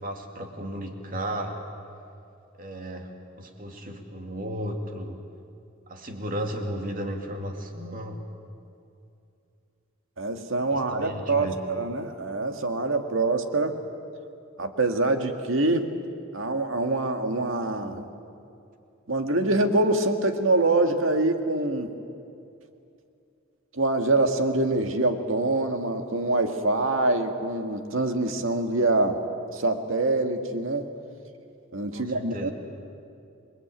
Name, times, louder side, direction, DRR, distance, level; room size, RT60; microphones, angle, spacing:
voice 1, 0.0-1.6 2.6-3.1 3.4-5.2 5.9-8.2 10.7-11.6 31.9-32.5, equal, 40° right, 3 dB, 2.7 m, -34 dB
voice 2, 10.2-13.8 14.6-15.9 16.3-18.1 19.1-21.9 23.7-29.2 29.5-30.9 31.7-32.5, right 2 dB, 70° right, 5 dB, 2.0 m, -25 dB
27.5 x 22.0 x 9.1 m, 2.6 s
head